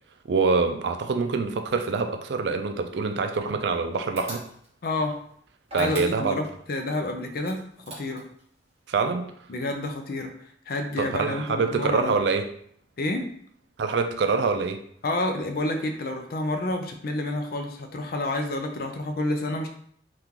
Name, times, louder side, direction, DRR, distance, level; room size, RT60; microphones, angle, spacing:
voice 1, 0.3-4.4 5.7-6.4 8.9-9.4 11.0-12.5 13.8-14.8, right 4 dB, 70° right, 6 dB, 0.4 m, -25 dB
sound 1, 4.2-4.8 5.6-6.5 7.4-8.4, right 2 dB, 35° right, 1.0 m, -39 dB
voice 2, 4.8-5.2 5.7-7.6 7.9-8.2 9.5-12.2 13.0-13.3 15.0-19.7, left 2 dB, 55° left, 5 dB, 0.5 m, -29 dB
3.6 x 2.4 x 2.9 m, 0.63 s
head